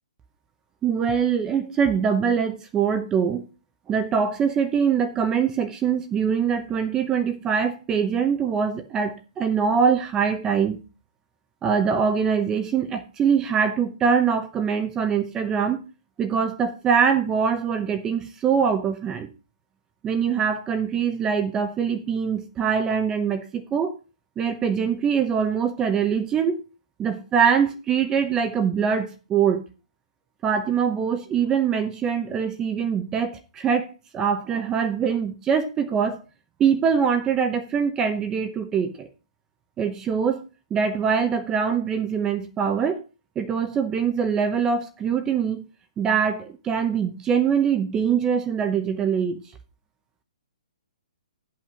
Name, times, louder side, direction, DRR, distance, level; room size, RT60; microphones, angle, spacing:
voice 1, 0.8-3.5 3.9-10.8 11.6-15.8 16.2-19.3 20.0-24.0 24.4-26.6 27.0-29.6 30.4-36.2 36.6-39.1 39.8-40.4 40.7-43.0 43.4-45.6 46.0-49.5, right 7 dB, 15° right, 0.8 m, -23 dB
8.7 x 5.7 x 5.7 m
hypercardioid pair, 155°, 4 cm